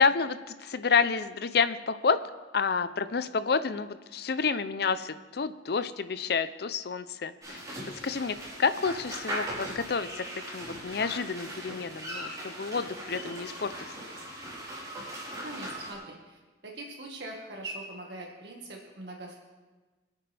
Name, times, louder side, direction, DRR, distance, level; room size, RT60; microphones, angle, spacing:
voice 1, 0.0-2.2 2.5-7.6 8.0-13.9, left 5 dB, 65° left, 13 dB, 0.6 m, -29 dB
sound 1, 7.4-15.9, equal, 20° right, 4.1 m, -39 dB
voice 2, 15.4-19.4, right 2 dB, 70° right, -1 dB, 1.8 m, -42 dB
26.5 x 9.1 x 3.4 m, 1.3 s
head